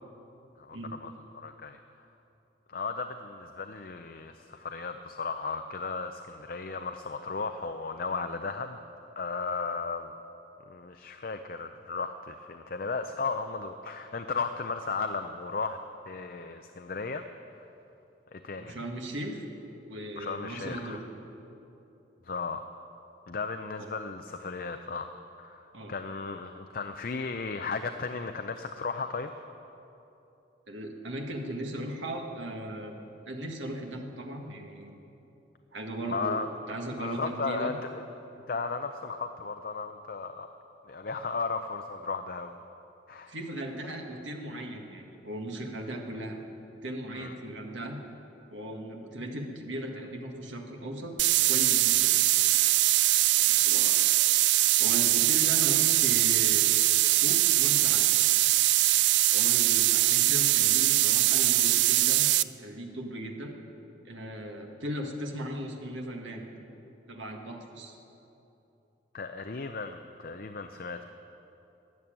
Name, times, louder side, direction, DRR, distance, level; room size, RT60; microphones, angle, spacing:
voice 1, 0.6-1.8 2.7-8.8 9.2-10.1 10.7-15.8 16.1-17.3 18.3-18.8 20.2-21.0 22.2-22.6 23.3-29.3 36.1-36.5 37.0-38.0 38.5-40.5 40.8-42.6 43.1-43.3 47.1-47.3 69.1-71.0, left 4 dB, 50° left, 7 dB, 0.5 m, -35 dB
voice 2, 18.6-19.4 19.9-21.0 23.8-23.9 25.7-25.9 30.7-32.9 33.3-34.9 35.7-36.4 36.7-37.7 43.3-46.4 46.8-48.0 48.5-51.1 51.5-52.1 53.3-54.0 54.8-56.7 57.1-58.1 59.3-63.5 64.1-66.4 67.1-68.0, right 1 dB, 85° right, 2 dB, 1.7 m, -37 dB
sound 1, 51.2-62.4, right 16 dB, 70° right, 0.3 m, -22 dB
13.0 x 11.0 x 8.8 m, 2.9 s
head